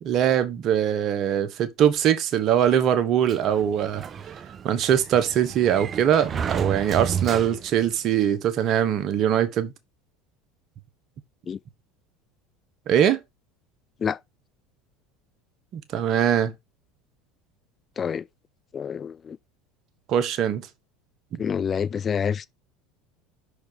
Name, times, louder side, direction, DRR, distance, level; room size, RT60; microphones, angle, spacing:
voice 1, 0.0-4.0 4.6-9.7 12.9-13.2 15.7-16.5 20.1-20.6, right 9 dB, 50° right, 1.2 m, -22 dB
Sliding door, 3.3-7.9, right 7 dB, 35° right, 0.6 m, -32 dB
voice 2, 18.7-19.4 21.4-22.4, left 7 dB, 35° left, 0.4 m, -27 dB
6.0 x 4.9 x 5.2 m
hypercardioid pair, 80°, 0 cm